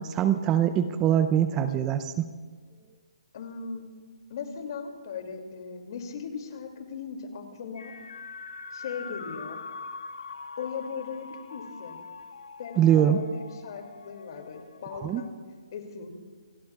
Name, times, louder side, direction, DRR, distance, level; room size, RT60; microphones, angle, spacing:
voice 1, 0.0-2.3 12.8-13.2 14.9-15.2, right 10 dB, 15° right, 11 dB, 0.5 m, -23 dB
voice 2, 3.3-3.8 4.3-8.0 8.7-9.6 10.6-12.0 12.6-15.3 15.7-16.1, left 6 dB, 50° left, 5 dB, 2.5 m, -38 dB
sound 1, 7.8-15.3, left 4 dB, 85° left, 0.9 m, -43 dB
28.0 x 19.5 x 2.4 m, 1.5 s
hypercardioid pair, 160°, 3 cm